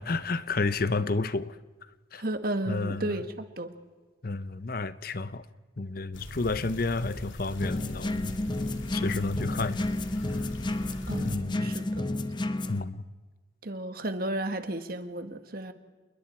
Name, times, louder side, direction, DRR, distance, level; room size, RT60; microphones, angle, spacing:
voice 1, 0.0-1.6 2.1-2.2 2.7-3.2 4.2-5.4 5.8-8.3 8.9-9.8 11.2-11.7 12.7-13.0, left 3 dB, 50° left, 14 dB, 0.8 m, -31 dB
voice 2, 2.2-3.7 11.1-12.1 13.6-15.7, right 1 dB, 50° right, 8 dB, 1.5 m, -33 dB
sound 1, 6.1-11.4, equal, 85° left, 2.9 m, -41 dB
sound 2, 7.6-12.8, left 1 dB, 25° left, 0.8 m, -31 dB
28.5 x 21.0 x 4.4 m, 1.3 s
head